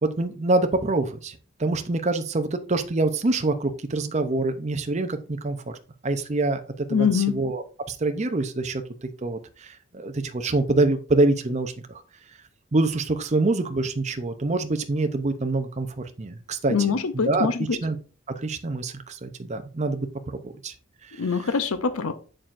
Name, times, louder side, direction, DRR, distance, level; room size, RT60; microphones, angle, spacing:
voice 1, 0.0-5.6 6.0-6.6 6.9-8.8 9.2-11.7 12.7-15.9 16.2-16.7 17.1-17.5 17.8-18.0 18.4-20.1 20.3-20.7, right 2 dB, 35° right, 0.6 m, -25 dB
voice 2, 6.9-7.4 16.7-17.8 21.2-22.1, left 6 dB, 85° left, 0.6 m, -24 dB
7.4 x 6.7 x 2.5 m
head